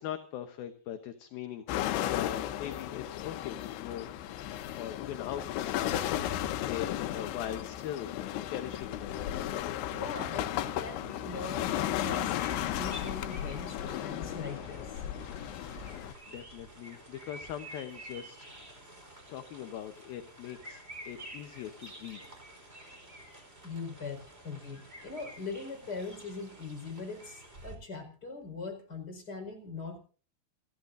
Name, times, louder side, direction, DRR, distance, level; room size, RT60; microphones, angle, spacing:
voice 1, 0.0-9.7 15.8-18.6 19.3-22.2, left 10 dB, 70° left, 7 dB, 2.5 m, -41 dB
sound 1, 1.7-16.1, left 12 dB, 85° left, 3.3 m, -34 dB
voice 2, 9.9-15.0 23.6-30.0, left 4 dB, 20° left, 3 dB, 5.1 m, -41 dB
sound 2, 11.7-27.8, right 1 dB, 15° right, 4.0 m, -50 dB
29.5 x 12.5 x 2.6 m, 0.38 s
omnidirectional pair, 5.1 m